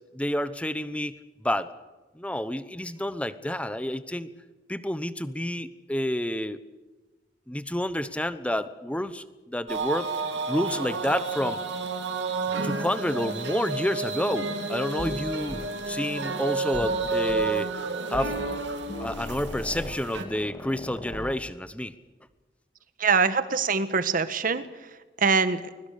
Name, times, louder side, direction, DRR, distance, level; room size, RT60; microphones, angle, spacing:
voice 1, 0.1-1.7 2.1-4.3 4.7-6.6 7.5-10.1 10.5-11.6 12.6-17.7 18.1-18.4 19.0-21.9, left 1 dB, 5° left, 13 dB, 1.0 m, -29 dB
sound 1, 9.7-20.2, right 3 dB, 85° right, 2.9 m, -31 dB
sound 2, 15.0-15.2 15.5-15.7 16.7-17.5 18.1-18.6 18.9-21.4, left 1 dB, 25° left, 2.4 m, -38 dB
voice 2, 23.0-24.7 25.2-25.6, right 5 dB, 50° right, 12 dB, 1.5 m, -23 dB
24.5 x 22.0 x 6.7 m, 1.2 s
head